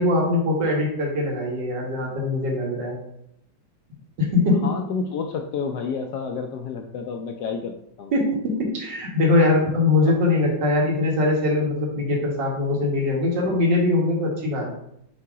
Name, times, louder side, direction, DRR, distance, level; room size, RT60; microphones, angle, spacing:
voice 1, 0.0-3.0 4.2-4.7 8.1-14.7, left 2 dB, 60° right, -1 dB, 2.1 m, -22 dB
voice 2, 4.6-8.1 10.0-10.1, left 5 dB, 80° left, 4 dB, 0.9 m, -30 dB
7.5 x 2.8 x 4.7 m, 0.75 s
omnidirectional pair, 2.2 m